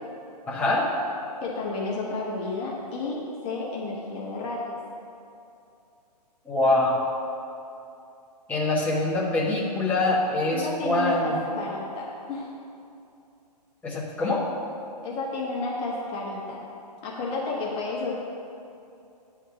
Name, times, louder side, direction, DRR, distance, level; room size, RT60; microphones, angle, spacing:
voice 1, 0.5-0.9 6.4-7.0 8.5-11.4 13.8-14.4, left 2 dB, 5° left, -6 dB, 1.1 m, -24 dB
voice 2, 1.4-4.8 10.5-12.5 15.0-16.6 17.0-18.1, left 3 dB, 25° left, -4 dB, 1.2 m, -31 dB
10.0 x 3.6 x 5.9 m, 2.6 s
hypercardioid pair, 135°, 21 cm